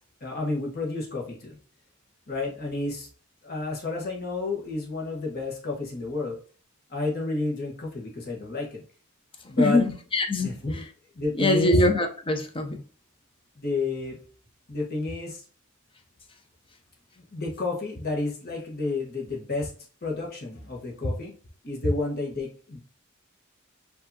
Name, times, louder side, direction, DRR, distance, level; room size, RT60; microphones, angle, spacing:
voice 1, 0.2-1.6 2.3-3.1 3.4-6.4 6.9-8.8 9.4-9.8 10.4-10.8 11.1-11.8 13.6-14.2 14.7-15.4 17.3-19.7 20.0-21.3 21.6-22.8, left 3 dB, 45° left, 1.3 m, -30 dB
voice 2, 10.1-10.5 11.4-12.8, left 2 dB, 25° left, 0.6 m, -22 dB
4.6 x 2.7 x 2.7 m
head